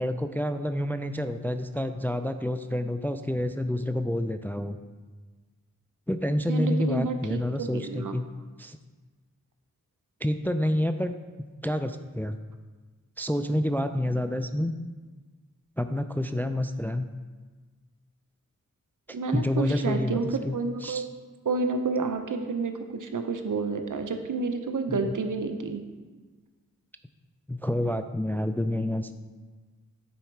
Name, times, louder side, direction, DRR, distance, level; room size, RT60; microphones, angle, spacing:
voice 1, 0.0-4.8 6.1-8.2 8.6-8.8 10.2-11.1 11.6-12.4 13.2-14.7 15.8-17.1 19.1-20.6 20.8-21.1 24.9-25.0 27.5-29.1, left 1 dB, 5° left, 9 dB, 0.3 m, -28 dB
voice 2, 6.5-8.2 19.1-21.0 21.4-25.8, right 4 dB, 70° right, 7 dB, 0.7 m, -30 dB
9.4 x 4.1 x 4.5 m, 1.3 s
wide cardioid pair, 45°, 33 cm